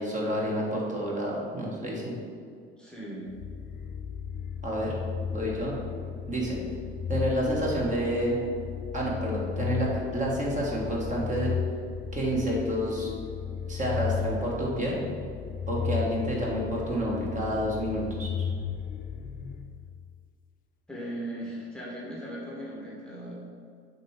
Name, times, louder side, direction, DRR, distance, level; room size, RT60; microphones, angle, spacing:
voice 1, 0.0-2.2 4.6-5.0 5.3-5.8 6.3-6.6 7.1-8.4 8.9-11.5 12.1-13.1 13.7-15.0 15.7-18.3, equal, 25° right, -4 dB, 1.5 m, -29 dB
voice 2, 2.8-3.3 20.9-23.3, right 1 dB, 5° left, -6 dB, 1.3 m, -38 dB
sound 1, 3.3-20.2, left 7 dB, 25° left, 0.4 m, -35 dB
6.6 x 3.1 x 4.8 m, 2.2 s
figure-of-eight pair, 65°, 32 cm